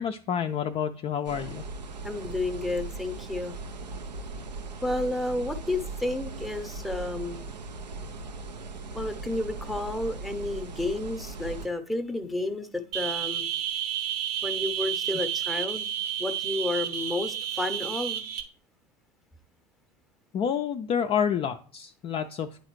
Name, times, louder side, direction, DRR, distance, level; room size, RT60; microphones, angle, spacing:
voice 1, 0.0-1.6 20.3-22.5, left 8 dB, 30° left, 0.3 m, -28 dB
sound 1, 1.2-11.7, right 3 dB, 90° right, 0.4 m, -39 dB
voice 2, 2.0-3.5 4.8-7.5 8.9-13.5 14.4-15.9 16.2-18.2, left 2 dB, ahead, 0.7 m, -31 dB
sound 2, 12.9-18.4, right 10 dB, 70° right, 0.9 m, -31 dB
9.5 x 3.9 x 3.0 m
figure-of-eight pair, 75°, 21 cm